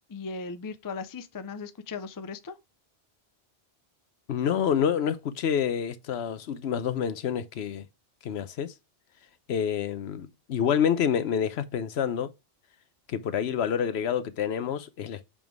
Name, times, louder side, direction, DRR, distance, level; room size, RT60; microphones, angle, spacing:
voice 1, 0.1-2.6, left 4 dB, 30° left, 0.4 m, -37 dB
voice 2, 4.3-7.9 8.2-8.7 9.5-12.3 13.1-15.3, left 8 dB, 85° left, 1.0 m, -28 dB
7.1 x 3.7 x 4.7 m
omnidirectional pair, 1.1 m